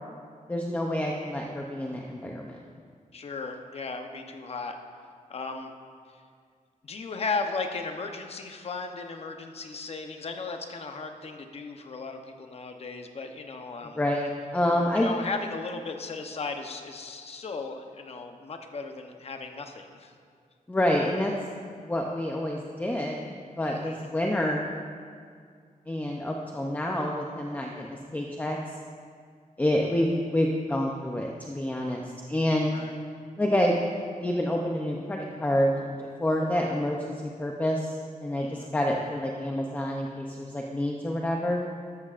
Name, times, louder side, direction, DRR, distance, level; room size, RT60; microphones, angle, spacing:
voice 1, 0.5-2.6 13.9-15.1 20.7-21.3 21.8-24.7 25.9-28.6 29.6-32.0 32.3-32.7 33.4-33.8 34.2-35.9 36.2-38.0 38.2-41.6, left 1 dB, 10° left, 0 dB, 0.6 m, -28 dB
voice 2, 3.1-4.7 5.3-5.7 6.8-14.0 15.0-20.1 23.7-24.1 32.7-33.0 38.4-38.7, left 4 dB, 45° left, 5 dB, 0.8 m, -36 dB
13.0 x 13.0 x 2.5 m, 2.1 s
wide cardioid pair, 175°, 14 cm